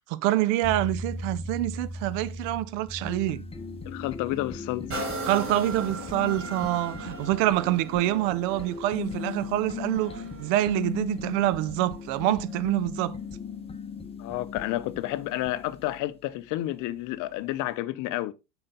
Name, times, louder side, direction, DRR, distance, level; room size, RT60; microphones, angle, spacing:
voice 1, 0.1-3.4 5.2-13.2, right 15 dB, 45° right, 0.7 m, -26 dB
sound 1, 0.6-16.0, left 4 dB, 10° left, 1.1 m, -38 dB
voice 2, 3.9-5.1 14.2-18.3, left 16 dB, 40° left, 0.8 m, -30 dB
sound 2, 4.9-12.5 13.1-13.2, right 3 dB, 25° right, 2.5 m, -39 dB
7.5 x 5.9 x 3.8 m
figure-of-eight pair, 75°, 49 cm